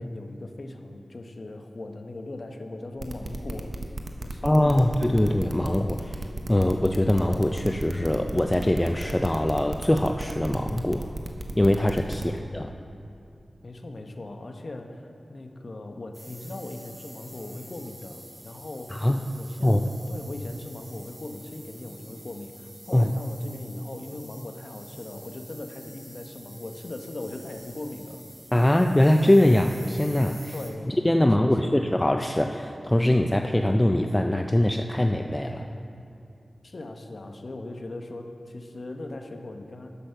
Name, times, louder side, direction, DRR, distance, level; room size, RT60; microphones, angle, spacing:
voice 1, 0.0-3.8 4.2-5.0 12.1-12.4 13.6-15.0 15.3-19.1 19.4-28.2 30.5-30.9 31.2-31.8 36.6-39.9, left 2 dB, 55° left, 4 dB, 0.9 m, -39 dB
sound 1, 3.0-12.4, right 2 dB, 50° right, 0.9 m, -34 dB
voice 2, 4.4-11.1 11.6-12.7 18.9-19.3 19.6-19.8 22.9-23.1 28.5-30.5 30.9-35.7, left 1 dB, 15° left, 4 dB, 0.4 m, -22 dB
sound 2, 16.1-30.7, right 1 dB, 30° right, 2.2 m, -48 dB
10.0 x 6.2 x 6.6 m, 2.6 s
wide cardioid pair, 65°, 0 cm